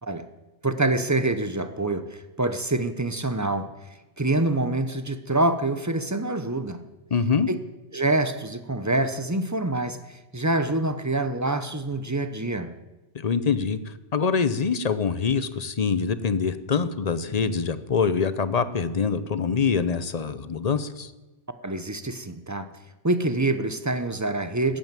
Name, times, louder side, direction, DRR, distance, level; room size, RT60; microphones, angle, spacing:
voice 1, 0.6-6.8 7.5-7.6 7.9-12.7 21.6-22.7 23.0-24.8, right 2 dB, 15° right, 10 dB, 0.7 m, -26 dB
voice 2, 7.1-7.5 13.1-21.1, left 5 dB, 40° left, 13 dB, 0.7 m, -25 dB
13.5 x 9.2 x 9.1 m, 1.1 s
omnidirectional pair, 1.2 m